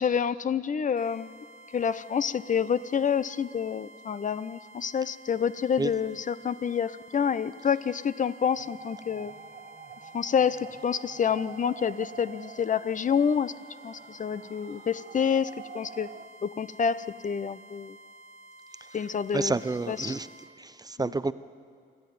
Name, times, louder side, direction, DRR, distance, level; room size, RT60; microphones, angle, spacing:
voice 1, 0.0-1.4 1.7-9.3 10.1-13.5 13.8-16.1 16.4-18.0 18.9-19.6 19.9-20.2, left 7 dB, 40° left, 16 dB, 0.6 m, -28 dB
sound 1, 1.0-20.5, right 1 dB, 70° left, 6.4 m, -52 dB
sound 2, 8.6-16.3, right 6 dB, 40° right, 1.1 m, -47 dB
voice 2, 19.3-20.3 20.6-21.3, right 3 dB, 20° right, 14 dB, 0.6 m, -30 dB
26.5 x 12.5 x 9.4 m, 2.3 s
cardioid pair, 90°, 20 cm